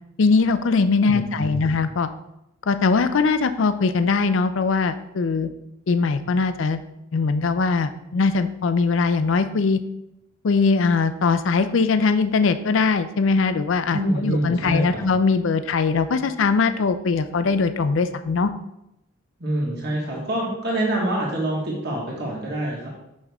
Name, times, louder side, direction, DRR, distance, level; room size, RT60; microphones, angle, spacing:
voice 1, 0.2-2.1 2.7-5.5 5.9-6.8 7.1-9.8 10.4-18.5, left 4 dB, 65° left, 10 dB, 0.4 m, -21 dB
voice 2, 1.0-1.7 13.9-15.1 19.4-22.9, right 1 dB, 50° right, -4 dB, 1.4 m, -26 dB
6.2 x 5.4 x 3.5 m, 0.85 s
head